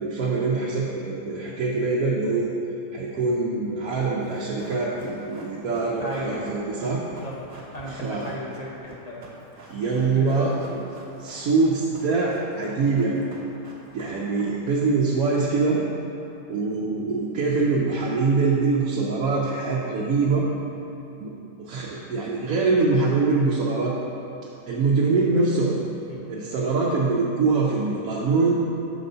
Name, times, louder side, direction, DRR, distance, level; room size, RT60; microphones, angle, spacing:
voice 1, 0.0-2.5 2.9-7.0 7.9-8.3 9.7-10.5 11.2-13.2 13.9-15.8 16.5-20.5 21.2-21.3 21.6-23.9 24.7-25.8 26.3-28.6, right 4 dB, 85° right, -5 dB, 1.2 m, -23 dB
Run, 4.2-14.8 15.1-15.2, right 2 dB, 55° right, 1.3 m, -48 dB
voice 2, 6.0-6.4 7.0-7.4 7.7-9.3 9.8-10.9 15.4-15.6 17.5-17.8 26.1-26.3, left 1 dB, 35° left, -3 dB, 0.7 m, -36 dB
6.9 x 4.0 x 5.4 m, 2.8 s
omnidirectional pair, 1.5 m